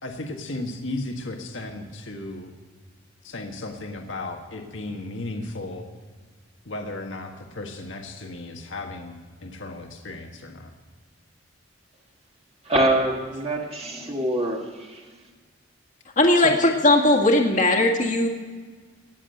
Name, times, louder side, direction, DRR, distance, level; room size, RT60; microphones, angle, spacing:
voice 1, 0.0-2.5 3.2-5.9 6.6-10.7 16.3-16.6, left 2 dB, 75° left, 3 dB, 1.6 m, -35 dB
voice 2, 12.6-15.1, right 1 dB, 30° right, 0 dB, 1.5 m, -25 dB
voice 3, 16.2-18.3, left 1 dB, 40° left, 1 dB, 1.7 m, -18 dB
18.5 x 7.5 x 7.8 m, 1.5 s
head